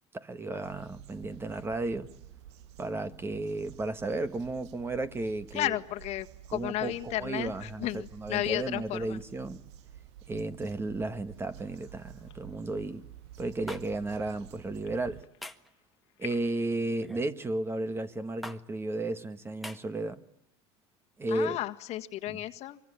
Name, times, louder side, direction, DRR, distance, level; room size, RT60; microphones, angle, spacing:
voice 1, 0.1-2.1 2.8-5.8 6.5-7.9 8.1-9.6 10.3-13.0 13.4-15.2 16.2-20.2 21.2-21.6 22.3-22.4, right 2 dB, 15° right, 1.6 m, -33 dB
sound 1, 0.6-15.2, right 11 dB, 75° right, 1.3 m, -50 dB
voice 2, 5.5-9.2 21.3-22.8, left 14 dB, 50° left, 1.7 m, -33 dB
sound 2, 11.4-16.7, left 18 dB, 80° left, 1.8 m, -53 dB
sound 3, 13.7-13.8 15.4-15.7 17.0-17.3 18.4-18.6 19.6-19.8, left 1 dB, ahead, 1.5 m, -41 dB
24.5 x 24.0 x 10.0 m
supercardioid pair, 115°, 14 cm